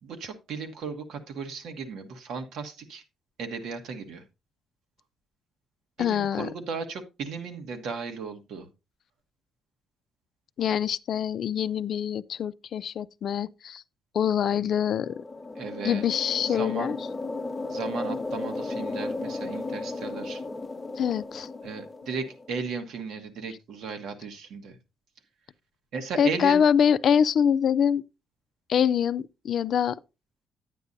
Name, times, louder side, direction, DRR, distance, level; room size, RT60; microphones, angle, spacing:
voice 1, 0.0-3.0 3.4-4.2 6.0-8.7 15.5-16.0 16.4-17.0 17.7-20.4 21.6-24.8 25.9-26.6, right 5 dB, 80° right, 1.3 m, -35 dB
voice 2, 6.0-6.5 10.6-13.8 14.1-15.2 15.8-17.0 21.0-21.5 26.2-28.0 28.7-30.0, left 8 dB, 65° left, 0.4 m, -24 dB
sound 1, 14.8-22.5, left 3 dB, 25° left, 0.7 m, -35 dB
9.6 x 9.0 x 2.6 m
cardioid pair, 90°, 0 cm